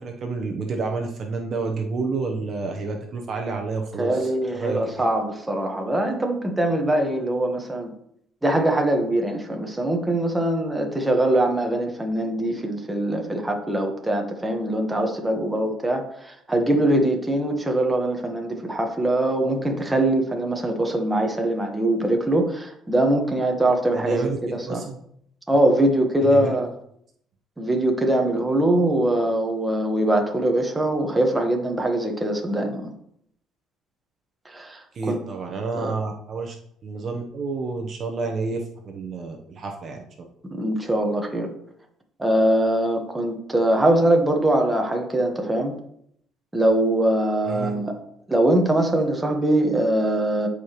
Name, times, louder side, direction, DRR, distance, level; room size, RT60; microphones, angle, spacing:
voice 1, 0.0-4.3 4.5-5.0 23.9-25.0 26.2-26.5 34.9-36.6 36.8-40.0 47.4-47.7, right 4 dB, 40° right, 3 dB, 0.9 m, -29 dB
voice 2, 4.0-7.9 8.4-24.8 25.5-26.7 27.6-32.9 34.4-35.2 35.7-35.9 40.5-41.5 42.2-45.7 46.5-48.0 48.3-50.5, right 1 dB, 10° right, 2 dB, 1.2 m, -22 dB
13.5 x 4.8 x 3.0 m, 0.71 s
cardioid pair, 150°, 0 cm